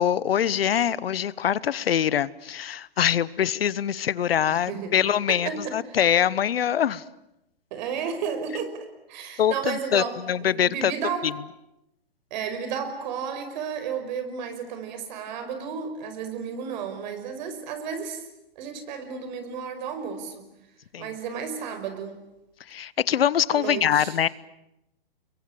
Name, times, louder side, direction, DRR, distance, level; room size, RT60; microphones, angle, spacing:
voice 1, 0.0-7.0 9.4-10.9 11.2-11.3 20.9-21.1 22.7-24.3, left 9 dB, 70° left, 1.1 m, -24 dB
voice 2, 4.5-4.9 5.3-6.0 7.7-11.3 12.3-18.2 18.6-20.5 21.0-22.2 23.5-24.2, right 7 dB, 45° right, 5.4 m, -33 dB
30.0 x 22.5 x 8.7 m
hypercardioid pair, 130°, 30 cm